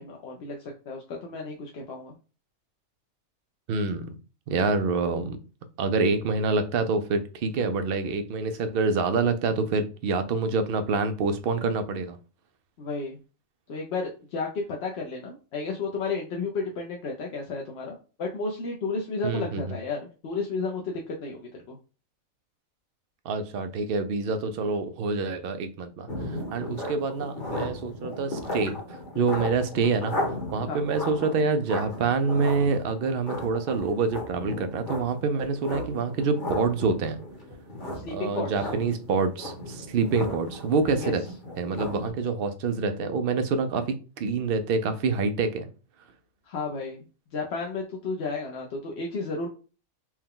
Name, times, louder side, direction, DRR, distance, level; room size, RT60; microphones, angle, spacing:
voice 1, 0.0-2.1 12.8-13.2 13.7-14.5 14.8-21.8 26.7-26.8 30.7-30.8 38.0-38.7 41.0-41.1 43.1-43.2 46.5-47.0 47.3-49.5, left 4 dB, 55° left, 0.8 m, -33 dB
voice 2, 3.7-4.1 4.5-5.4 5.8-12.2 19.2-19.6 23.2-37.2 38.1-41.2 41.6-45.7, right 4 dB, 70° right, 0.5 m, -26 dB
sound 1, 26.1-42.1, left 1 dB, 35° left, 1.2 m, -36 dB
4.4 x 2.2 x 3.7 m
omnidirectional pair, 1.5 m